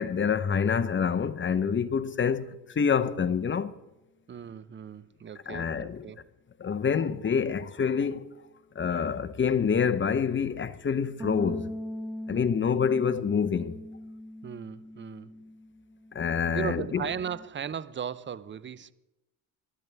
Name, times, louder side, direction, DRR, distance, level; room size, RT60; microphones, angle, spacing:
voice 1, 0.0-3.7 5.5-6.0 6.6-8.3 8.7-11.7 12.3-13.8 16.1-17.1, left 6 dB, 30° left, 0.8 m, -27 dB
voice 2, 4.3-6.3 14.4-15.3 16.5-18.9, right 8 dB, 30° right, 0.6 m, -37 dB
Bass guitar, 11.2-17.4, left 1 dB, 5° right, 1.7 m, -40 dB
20.5 x 12.0 x 3.4 m
supercardioid pair, 85°, 38 cm